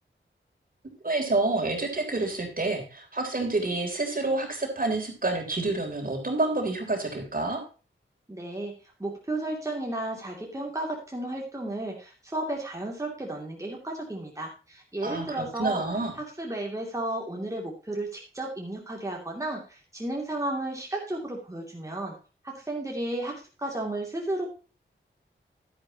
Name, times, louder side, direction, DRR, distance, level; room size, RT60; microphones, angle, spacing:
voice 1, 1.0-7.6 15.0-16.1, right 2 dB, 45° right, 2 dB, 3.4 m, -28 dB
voice 2, 8.3-15.8 16.2-22.1 22.4-24.5, right 1 dB, 15° right, -1 dB, 2.6 m, -33 dB
11.5 x 10.5 x 2.9 m, 0.34 s
wide cardioid pair, 80°, 20 cm